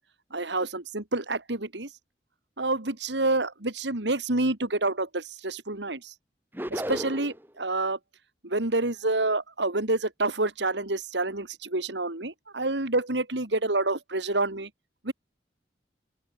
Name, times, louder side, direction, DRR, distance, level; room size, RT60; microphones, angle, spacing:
voice 1, 0.3-1.9 2.6-6.1 6.7-8.0 8.4-14.7 15.0-15.1, right 2 dB, 80° right, 2.7 m, -28 dB
sound 1, 6.5-7.5, equal, 10° right, 2.2 m, -33 dB
open air
head